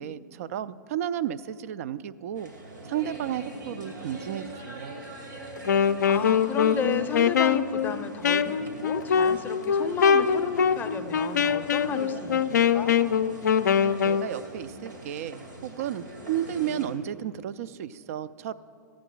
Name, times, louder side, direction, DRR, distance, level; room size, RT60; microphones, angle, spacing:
voice 1, 0.0-2.5 2.8-4.9 14.0-18.5, right 10 dB, 50° right, 15 dB, 0.4 m, -33 dB
sound 1, 2.3-16.9, right 1 dB, 80° right, 2.3 m, -42 dB
Wind instrument woodwind instrument, 5.6-14.3, left 7 dB, 65° left, 0.4 m, -23 dB
voice 2, 5.7-12.9, left 5 dB, 20° left, 8 dB, 0.6 m, -33 dB
15.0 x 8.6 x 3.8 m, 2.3 s
figure-of-eight pair, 105°, 10 cm